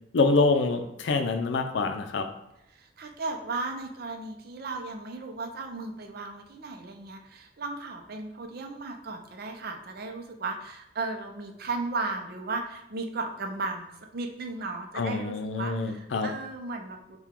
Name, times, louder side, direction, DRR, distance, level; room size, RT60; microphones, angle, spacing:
voice 1, 0.1-2.3 14.9-16.3, left 3 dB, 85° left, 6 dB, 0.5 m, -25 dB
voice 2, 2.7-17.2, right 3 dB, 60° right, 4 dB, 0.5 m, -35 dB
4.6 x 2.3 x 3.6 m, 0.82 s
head